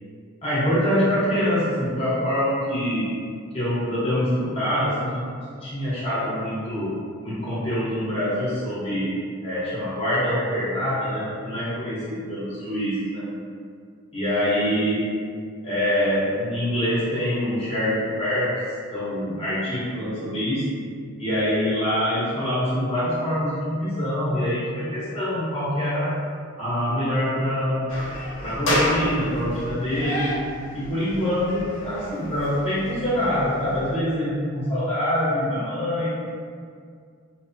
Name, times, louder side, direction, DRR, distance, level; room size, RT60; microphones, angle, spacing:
voice 1, 0.4-3.2 3.5-9.2 9.4-13.3 14.1-15.1 15.6-18.6 18.9-20.7 21.2-26.2 26.6-27.9 28.4-30.4 30.7-36.2, equal, 30° left, -11 dB, 0.8 m, -25 dB
sound 1, 27.9-33.9, left 1 dB, 80° left, 0.7 m, -30 dB
2.8 x 2.0 x 2.6 m, 2.1 s
head